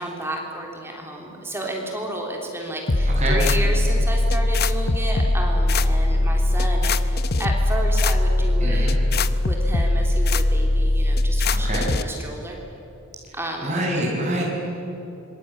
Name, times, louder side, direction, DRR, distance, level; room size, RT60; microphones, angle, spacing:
voice 1, 0.0-8.9 9.2-12.6 13.3-13.8, right 1 dB, 10° right, 0 dB, 3.5 m, -32 dB
sound 1, 2.9-12.0, left 1 dB, 45° left, 0.9 m, -20 dB
voice 2, 8.6-9.0 11.5-11.9 13.6-14.4, right 1 dB, 30° right, -3 dB, 7.1 m, -26 dB
26.5 x 22.5 x 9.8 m, 3.0 s
head